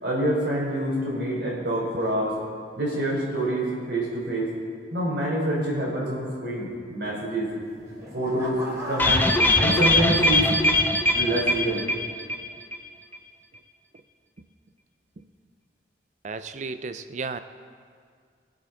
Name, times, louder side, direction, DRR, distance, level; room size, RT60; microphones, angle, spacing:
voice 1, 0.0-2.3 2.8-4.5 4.9-7.5 8.1-9.2 9.6-10.5 11.1-11.8, right 1 dB, 65° right, -4 dB, 3.5 m, -26 dB
sound 1, 7.5-11.1 11.7-12.0, equal, 20° right, 2.7 m, -38 dB
sound 2, 9.0-12.5 12.7-12.8 13.1-13.2, left 1 dB, 10° left, 0.6 m, -21 dB
voice 2, 16.2-17.4, right 4 dB, 40° right, 11 dB, 0.4 m, -34 dB
21.0 x 7.8 x 3.8 m, 2.1 s
head